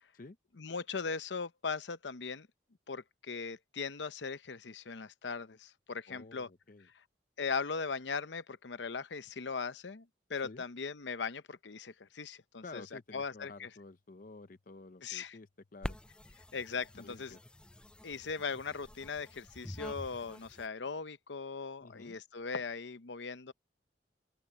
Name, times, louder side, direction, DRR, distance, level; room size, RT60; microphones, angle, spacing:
voice 1, 0.6-2.5 2.9-6.5 7.4-12.8 13.1-13.7 15.0-15.4 16.5-17.3 18.0-23.5, left 5 dB, 85° left, 0.8 m, -39 dB
voice 2, 6.1-6.9 10.4-10.6 12.6-16.0 16.7-17.4 21.8-22.2, left 3 dB, 50° left, 0.7 m, -51 dB
sound 1, 15.8-20.7, left 1 dB, 5° left, 0.3 m, -47 dB
open air
head